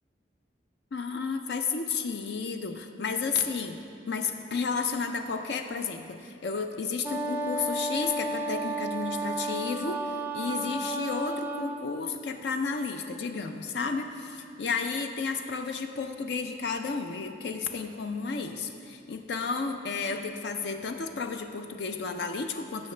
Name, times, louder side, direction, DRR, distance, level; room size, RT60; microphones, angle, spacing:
voice 1, 0.9-3.8 4.1-10.1 10.3-22.9, left 4 dB, 60° left, 6 dB, 0.4 m, -32 dB
Wind instrument woodwind instrument, 7.0-11.9, right 1 dB, 10° right, 0.3 m, -32 dB
15.5 x 5.8 x 3.2 m, 2.6 s
head